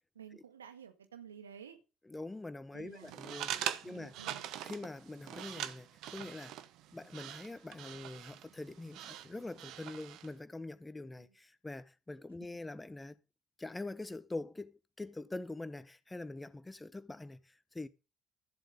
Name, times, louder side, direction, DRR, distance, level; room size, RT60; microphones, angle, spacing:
voice 1, 0.2-1.8 2.7-3.2 3.8-4.5 11.2-11.3 12.4-12.5, right 7 dB, 85° right, 1.7 m, -52 dB
voice 2, 2.0-4.1 4.6-6.6 6.9-13.2 13.6-14.7 15.0-17.9, left 2 dB, 15° left, 1.3 m, -44 dB
sound 1, 3.0-10.3, right 11 dB, 65° right, 0.9 m, -43 dB
14.0 x 7.7 x 5.4 m
figure-of-eight pair, 50°, 0 cm